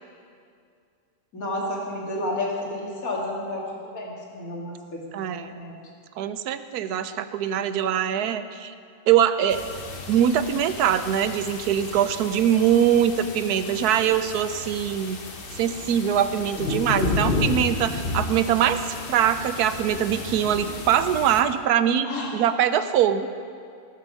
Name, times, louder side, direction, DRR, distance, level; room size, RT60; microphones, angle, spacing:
voice 1, 1.3-3.6 3.9-5.8 22.0-22.3, left 1 dB, 65° left, -3 dB, 2.6 m, -31 dB
voice 2, 5.1-5.5 6.2-8.7 9.1-9.6 10.1-15.2 15.5-23.3, right 9 dB, 90° right, 12 dB, 1.2 m, -23 dB
sound 1, 9.5-21.4, left 3 dB, 40° left, 1.1 m, -32 dB
20.0 x 7.1 x 6.3 m, 2.3 s
omnidirectional pair, 1.6 m